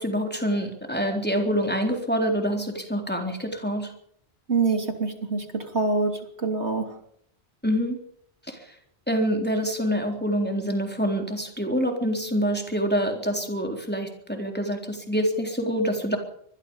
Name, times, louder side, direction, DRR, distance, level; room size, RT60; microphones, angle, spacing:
voice 1, 0.0-3.9 7.6-8.0 8.5-8.6 9.1-16.2, equal, 10° left, 2 dB, 3.9 m, -26 dB
voice 2, 4.5-6.9, right 4 dB, 80° right, 5 dB, 3.4 m, -25 dB
25.5 x 20.5 x 5.6 m, 0.68 s
omnidirectional pair, 1.1 m